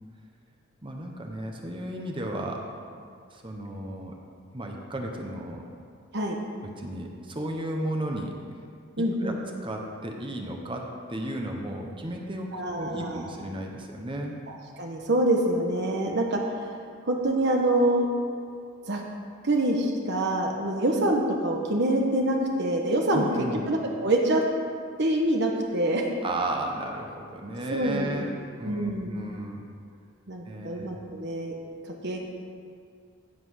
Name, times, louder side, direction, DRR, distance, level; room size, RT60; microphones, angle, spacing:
voice 1, 0.8-2.7 3.3-4.1 4.5-5.7 6.6-8.3 9.2-9.4 9.6-14.3 23.1-23.6 26.2-28.3 28.6-29.6 30.5-30.9, right 1 dB, 25° right, 1 dB, 1.0 m, -34 dB
voice 2, 9.0-9.4 12.5-13.2 14.5-16.4 17.1-18.1 18.9-19.0 19.4-23.3 23.7-24.4 25.0-26.1 27.7-28.2 28.6-29.1 30.3-31.5 32.0-32.2, right 1 dB, 55° right, 1 dB, 1.2 m, -25 dB
15.0 x 5.8 x 6.4 m, 2.2 s
head